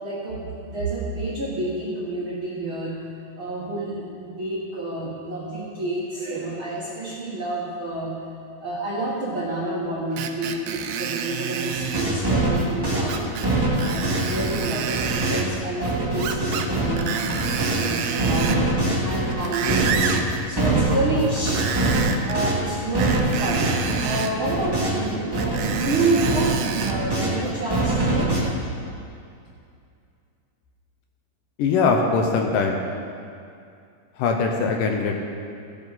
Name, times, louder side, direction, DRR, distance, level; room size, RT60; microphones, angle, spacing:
voice 1, 0.0-3.0 3.4-8.1 8.6-13.3 13.7-18.6 19.0-20.1 20.5-21.6 22.2-23.7 24.0-28.3, right 2 dB, 55° right, -7 dB, 1.5 m, -28 dB
Screech, 10.2-12.1 13.1-13.5 13.8-15.5 16.2-16.7 17.0-18.7 19.2-20.3 21.4-22.4 23.0-24.3 25.4-27.0 27.6-27.7, right 7 dB, 80° right, 2.0 m, -29 dB
sound 1, 11.7-17.8 18.2-25.1 25.3-27.4 27.7-28.4, right 2 dB, 15° right, 0.9 m, -24 dB
voice 2, 31.6-32.8 34.2-35.3, left 4 dB, 75° left, 3 dB, 2.2 m, -21 dB
15.5 x 9.2 x 4.1 m, 2.4 s
omnidirectional pair, 4.2 m